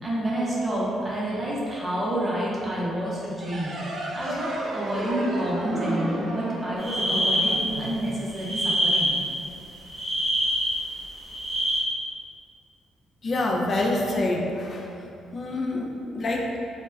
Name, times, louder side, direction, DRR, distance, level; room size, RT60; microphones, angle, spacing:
voice 1, 0.0-3.8 4.1-9.1, right 1 dB, 20° right, -7 dB, 0.6 m, -29 dB
sound 1, 3.4-8.6, right 1 dB, 65° right, 0.4 m, -33 dB
sound 2, 6.8-7.9 8.3-9.4 9.9-11.8, equal, ahead, 0.9 m, -25 dB
voice 2, 13.2-15.1 15.3-16.6, left 2 dB, 45° left, 0 dB, 0.3 m, -27 dB
2.2 x 2.1 x 3.3 m, 2.5 s
cardioid pair, 90°, 0 cm